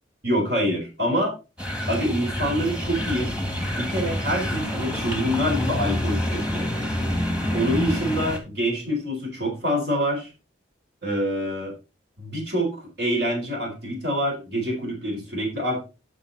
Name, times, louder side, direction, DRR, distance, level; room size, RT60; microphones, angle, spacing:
voice 1, 0.2-1.3 1.9-3.3 3.7-6.7 7.5-10.3 11.0-11.7 12.2-15.8, equal, 60° right, 0 dB, 4.0 m, -26 dB
sound 1, 1.6-8.4, left 1 dB, 5° right, 1.6 m, -27 dB
8.8 x 6.6 x 4.0 m, 0.29 s
head